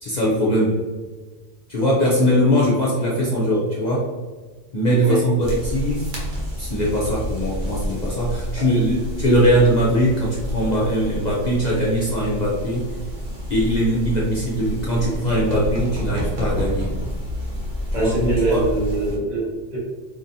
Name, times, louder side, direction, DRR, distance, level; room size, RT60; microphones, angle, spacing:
voice 1, 0.0-0.8 1.7-4.1 4.7-6.1 6.6-12.9 13.5-16.9 17.9-18.7, equal, 45° left, -5 dB, 0.7 m, -21 dB
sound 1, 5.4-19.2, equal, 90° right, 1.3 m, -29 dB
voice 2, 17.9-19.8, right 3 dB, 40° right, -6 dB, 1.2 m, -24 dB
4.0 x 3.0 x 2.6 m, 1.3 s
omnidirectional pair, 1.2 m